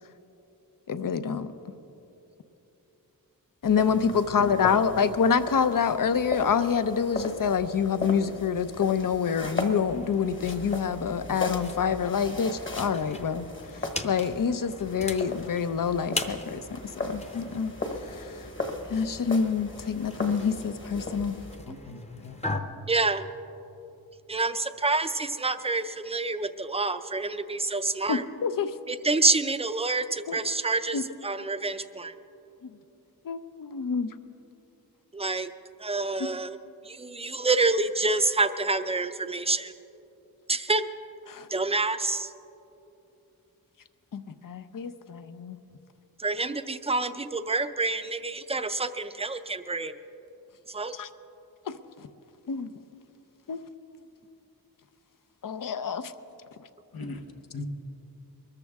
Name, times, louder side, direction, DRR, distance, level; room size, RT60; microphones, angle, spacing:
voice 1, 0.9-1.5 3.6-13.5 13.7-17.8 18.0-18.4 18.9-21.4 28.1-28.7 30.3-30.4 30.9-31.0 32.6-32.8 33.2-34.1 36.2-36.3 41.3-41.5 44.1-45.6 50.9-51.1 51.7-52.1 52.5-52.7 53.5-53.7 55.4-56.1, left 6 dB, 65° left, 12 dB, 0.7 m, -27 dB
sound 1, 3.6-21.6, left 2 dB, 35° left, 1.3 m, -37 dB
voice 2, 3.9-4.6 21.7-22.4 56.9-57.2 57.5-57.7, left 3 dB, 80° left, 7 dB, 1.1 m, -39 dB
sound 2, 9.9-22.6, left 2 dB, 20° left, 0.8 m, -40 dB
voice 3, 22.9-23.3 24.3-28.2 28.9-32.1 35.1-35.5 35.8-36.6 36.9-39.7 40.5-40.9 41.5-42.3 46.2-49.9 50.7-50.9, right 3 dB, 15° right, 10 dB, 0.5 m, -27 dB
23.0 x 13.5 x 3.6 m, 3.0 s
wide cardioid pair, 115°, 36 cm